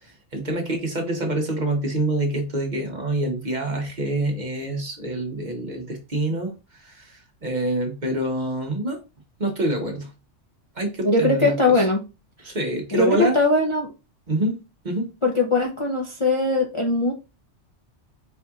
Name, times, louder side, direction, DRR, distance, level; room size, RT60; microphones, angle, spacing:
voice 1, 0.0-9.0 9.4-10.1 10.7-11.8 12.4-13.4 14.3-14.6 14.8-15.1, right 1 dB, 40° right, 3 dB, 1.1 m, -26 dB
voice 2, 11.0-12.0 12.9-13.9 15.2-17.1, left 2 dB, 35° left, 0 dB, 0.6 m, -20 dB
4.5 x 4.2 x 2.4 m, 0.29 s
omnidirectional pair, 1.2 m